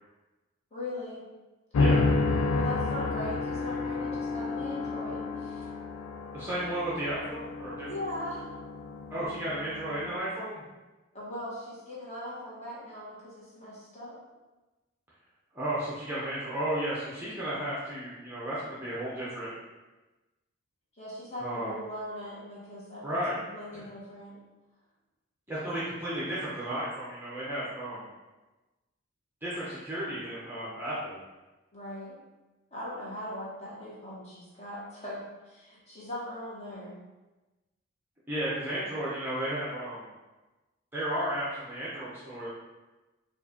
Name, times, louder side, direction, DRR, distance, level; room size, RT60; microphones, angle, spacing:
voice 1, 0.7-1.2 2.5-5.7 7.9-8.5 11.1-14.2 21.0-24.4 31.7-32.2 32.7-36.9, left 1 dB, 30° left, -7 dB, 1.1 m, -40 dB
sound 1, 1.7-10.1, left 3 dB, 80° left, 0.4 m, -30 dB
voice 2, 1.8-2.1 6.3-7.9 9.1-10.6 15.5-19.5 21.4-21.7 23.0-23.4 23.7-23.8 25.5-28.0 29.4-31.2 38.3-40.1 40.9-42.5, right 1 dB, 10° right, -9 dB, 0.6 m, -33 dB
4.6 x 2.4 x 2.7 m, 1.1 s
head